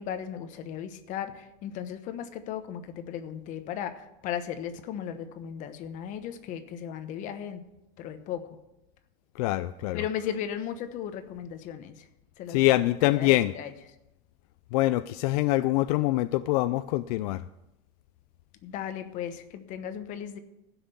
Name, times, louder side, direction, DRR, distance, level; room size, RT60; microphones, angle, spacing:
voice 1, 0.0-7.6 8.0-8.6 9.9-11.9 12.4-12.7 13.1-13.7 18.6-20.4, left 9 dB, 40° left, 9 dB, 1.1 m, -36 dB
voice 2, 9.3-10.0 12.5-13.5 14.7-17.5, left 17 dB, 75° left, 13 dB, 0.4 m, -24 dB
15.5 x 6.0 x 6.8 m, 0.89 s
cardioid pair, 165°, 20 cm